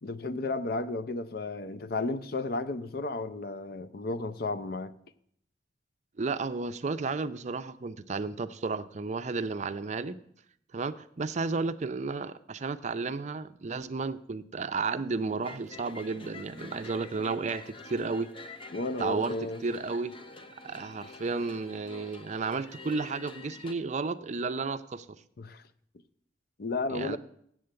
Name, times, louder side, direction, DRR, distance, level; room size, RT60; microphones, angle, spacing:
voice 1, 0.0-4.9 18.7-19.6 25.4-25.6 26.6-27.2, left 3 dB, 55° left, 0.6 m, -33 dB
voice 2, 6.2-10.2 10.7-18.3 19.0-20.1 20.6-25.1 26.9-27.2, right 4 dB, 40° right, 0.5 m, -33 dB
sound 1, 15.4-23.7, left 3 dB, 30° left, 0.9 m, -47 dB
8.3 x 7.7 x 7.6 m
head